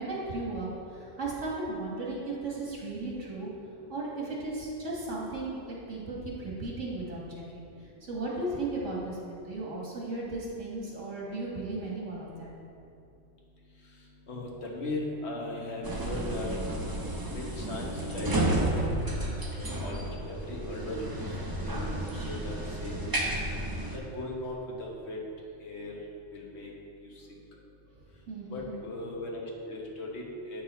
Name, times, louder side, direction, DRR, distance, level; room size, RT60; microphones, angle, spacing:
voice 1, 0.0-3.5 3.9-5.6 5.9-7.7 8.1-12.5 28.3-28.7, right 2 dB, 75° right, -4 dB, 2.1 m, -35 dB
voice 2, 14.3-16.6 16.9-18.7 19.5-23.2 24.1-25.2 25.6-26.0 26.3-26.7 28.5-30.6, left 1 dB, 60° left, -2 dB, 1.5 m, -38 dB
sound 1, 15.8-24.0, right 1 dB, 20° right, 0.6 m, -32 dB
8.1 x 6.1 x 4.3 m, 2.6 s
omnidirectional pair, 1.3 m